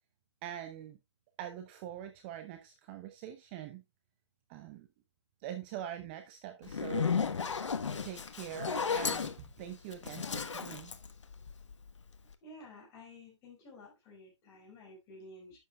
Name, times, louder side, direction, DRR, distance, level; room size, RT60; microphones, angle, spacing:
voice 1, 0.4-1.0 1.4-3.8 4.5-4.9 5.4-7.2 8.0-10.9, right 11 dB, 20° right, 0.7 m, -43 dB
Zipper (clothing), 6.6-11.9, left 6 dB, 75° left, 1.2 m, -34 dB
voice 2, 12.4-15.6, left 1 dB, 20° left, 4.7 m, -52 dB
11.0 x 8.2 x 2.3 m
hypercardioid pair, 150°, 16 cm